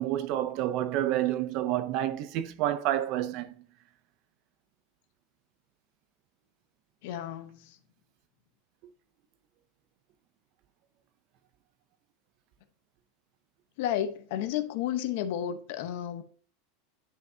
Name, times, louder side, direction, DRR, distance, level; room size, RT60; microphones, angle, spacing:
voice 1, 0.0-3.5, right 12 dB, 40° right, 0.6 m, -29 dB
voice 2, 7.0-7.8 13.8-16.2, left 10 dB, 50° left, 0.9 m, -32 dB
10.5 x 5.6 x 2.8 m
supercardioid pair, 180°, 0 cm